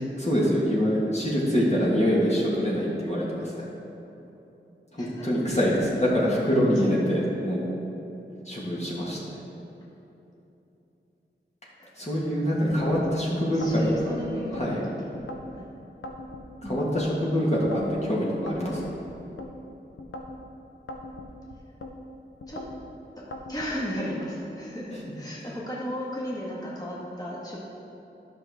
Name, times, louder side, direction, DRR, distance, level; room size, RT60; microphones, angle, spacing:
voice 1, 0.0-3.6 4.9-7.7 8.4-9.3 12.0-13.8 14.5-14.8 16.6-18.9, equal, 35° left, -6 dB, 1.5 m, -25 dB
voice 2, 5.0-5.3 6.3-7.2 11.8-12.3 13.1-14.9 15.5-15.7 16.6-16.8 22.5-22.7 23.2-27.6, equal, 20° left, -6 dB, 1.5 m, -35 dB
sound 1, 12.7-13.1 13.6-14.7 15.1-15.6 16.0-17.1 17.6-18.0 18.5-19.5 20.0-20.4 20.9-21.9 22.4-22.8 23.3-23.7, left 1 dB, 85° left, 0.7 m, -40 dB
11.0 x 6.2 x 3.4 m, 3.0 s
wide cardioid pair, 85°, 20 cm